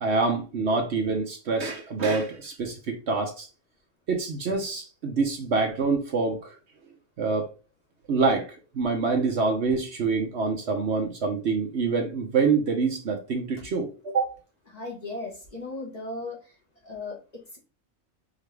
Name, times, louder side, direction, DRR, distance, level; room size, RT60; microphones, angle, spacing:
voice 1, 0.0-3.5 4.1-6.5 7.2-7.5 8.1-8.5 8.7-14.3, right 4 dB, 60° right, 1.0 m, -26 dB
voice 2, 14.7-16.6 16.8-17.6, left 2 dB, 30° left, 1.3 m, -37 dB
5.0 x 2.8 x 3.3 m
omnidirectional pair, 1.4 m